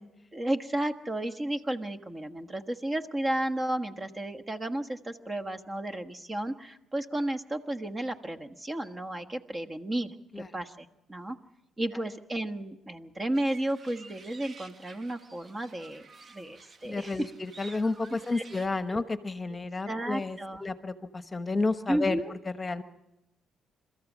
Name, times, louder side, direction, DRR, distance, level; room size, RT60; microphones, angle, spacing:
voice 1, 0.3-11.4 11.8-16.0 16.3-17.3 17.7-17.8 18.3-18.4 19.9-20.6 21.9-22.3, right 1 dB, 25° right, 6 dB, 1.3 m, -33 dB
sound 1, 13.3-18.7, right 4 dB, 45° right, 1.5 m, -51 dB
voice 2, 16.8-22.8, left 3 dB, 25° left, 10 dB, 1.2 m, -31 dB
28.0 x 14.0 x 7.3 m, 0.92 s
cardioid pair, 90°, 0 cm